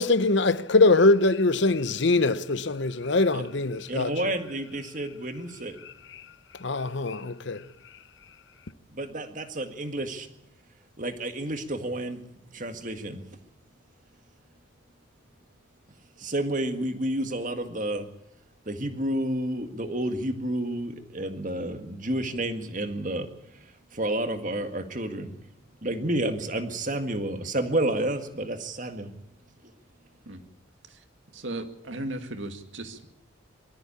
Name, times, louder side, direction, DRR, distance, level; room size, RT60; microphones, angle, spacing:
voice 1, 0.0-4.2 5.8-6.2 6.6-7.6, left 3 dB, 60° left, 0.8 m, -23 dB
voice 2, 3.9-5.8 8.9-10.3 11.0-12.2 12.5-13.2 16.2-18.1 18.7-23.3 23.9-25.3 25.8-29.1, right 1 dB, 40° right, 1.8 m, -30 dB
voice 3, 31.3-33.1, right 1 dB, 65° right, 2.2 m, -36 dB
22.5 x 13.5 x 8.6 m
head